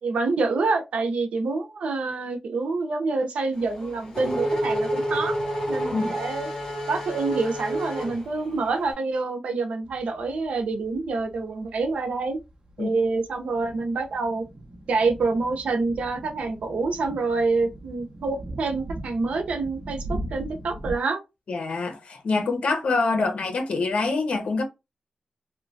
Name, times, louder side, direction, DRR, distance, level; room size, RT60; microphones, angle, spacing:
voice 1, 0.0-6.5 6.9-12.4 12.8-14.4 14.9-21.2, right 3 dB, 85° right, 0.6 m, -27 dB
Race car auto racing / Accelerating revving vroom, 3.6-8.8, equal, 35° left, 1.9 m, -29 dB
sound 1, 9.8-21.0, right 1 dB, 45° right, 0.7 m, -40 dB
voice 2, 21.5-24.6, left 3 dB, 70° left, 0.7 m, -25 dB
3.0 x 2.2 x 2.5 m
wide cardioid pair, 85°, 2 cm